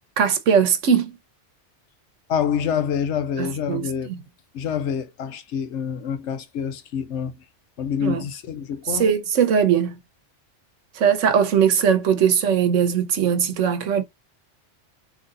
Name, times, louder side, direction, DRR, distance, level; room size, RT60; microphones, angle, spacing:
voice 1, 0.2-1.2 3.4-4.2 8.0-8.2 8.9-10.0 10.9-14.0, right 7 dB, 85° right, 1.2 m, -20 dB
voice 2, 2.3-4.1 4.5-7.3 7.8-9.1, left 7 dB, 75° left, 1.0 m, -26 dB
4.0 x 2.9 x 3.8 m
omnidirectional pair, 1.2 m